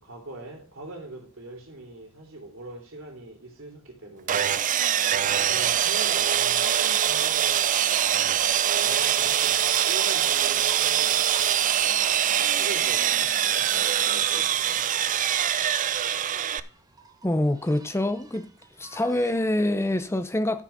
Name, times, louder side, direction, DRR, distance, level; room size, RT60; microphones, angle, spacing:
voice 1, 0.0-4.6 5.3-7.8 8.7-14.9, right 2 dB, 65° right, 3.0 m, -42 dB
Sawing, 4.3-16.6, right 10 dB, 40° right, 0.4 m, -23 dB
sound 1, 5.9-19.5, right 4 dB, 20° right, 1.1 m, -49 dB
voice 2, 17.2-18.5 18.8-20.6, left 1 dB, 10° left, 0.5 m, -25 dB
12.5 x 5.0 x 5.6 m
head